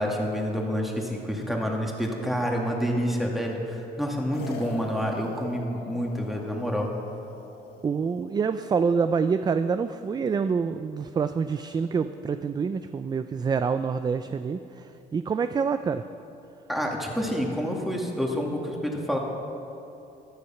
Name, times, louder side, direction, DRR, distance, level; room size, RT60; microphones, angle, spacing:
voice 1, 0.0-6.9 16.7-19.2, equal, ahead, 0 dB, 2.3 m, -28 dB
sound 1, 4.3-8.8, left 3 dB, 70° left, 1.8 m, -42 dB
voice 2, 7.8-16.0, right 5 dB, 25° right, 10 dB, 0.4 m, -26 dB
15.0 x 11.5 x 5.8 m, 2.8 s
cardioid pair, 110°, 17 cm